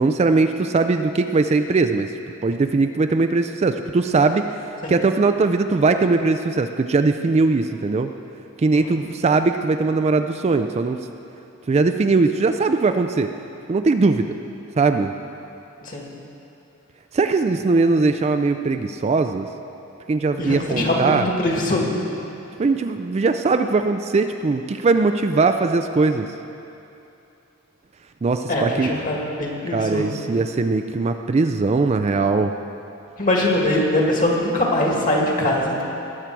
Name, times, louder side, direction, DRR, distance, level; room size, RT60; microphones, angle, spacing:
voice 1, 0.0-2.1 2.4-4.5 4.9-8.1 8.6-11.1 11.7-13.3 13.7-14.3 14.8-15.1 17.1-19.5 20.1-21.3 22.6-26.3 28.2-28.9 29.7-32.5, right 3 dB, 30° right, 7 dB, 0.3 m, -20 dB
voice 2, 20.4-22.0 28.5-30.2 33.2-35.8, left 1 dB, 40° left, -1 dB, 1.9 m, -22 dB
19.0 x 7.4 x 4.6 m, 2.8 s
head